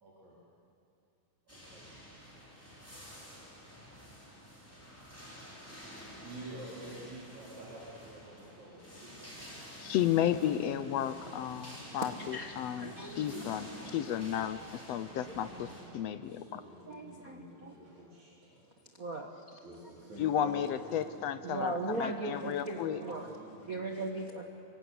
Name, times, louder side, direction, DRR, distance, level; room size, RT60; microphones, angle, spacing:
voice 1, 0.0-0.3 1.7-1.8 6.2-8.8 9.4-9.5 15.5-16.0 16.3-18.3 19.6-22.2 22.7-24.3, right 1 dB, 65° right, -6 dB, 5.5 m, -48 dB
sound 1, 1.5-15.8, equal, 5° left, 5.5 m, -49 dB
voice 2, 9.8-15.7 15.9-16.6 20.2-23.0, left 10 dB, 75° left, 12 dB, 1.6 m, -33 dB
voice 3, 12.0-13.4 16.9-17.8 19.0-19.6 21.4-23.4 23.7-24.5, right 2 dB, 45° right, 1 dB, 1.2 m, -38 dB
26.0 x 23.0 x 9.6 m, 2.6 s
omnidirectional pair, 3.5 m